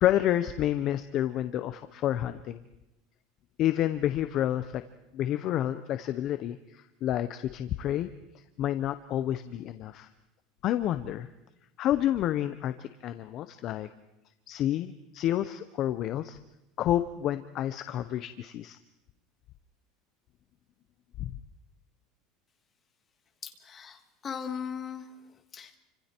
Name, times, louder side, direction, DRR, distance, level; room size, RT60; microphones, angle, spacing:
voice 1, 0.0-2.6 3.6-4.8 5.1-8.1 8.3-10.1 10.6-11.3 11.8-13.9 14.5-16.4 16.8-18.8 21.2-21.3, left 12 dB, 35° left, 11 dB, 0.7 m, -29 dB
voice 2, 23.4-25.8, left 7 dB, 20° left, 6 dB, 1.7 m, -39 dB
29.0 x 25.5 x 4.5 m, 0.93 s
cardioid pair, 175°, 0 cm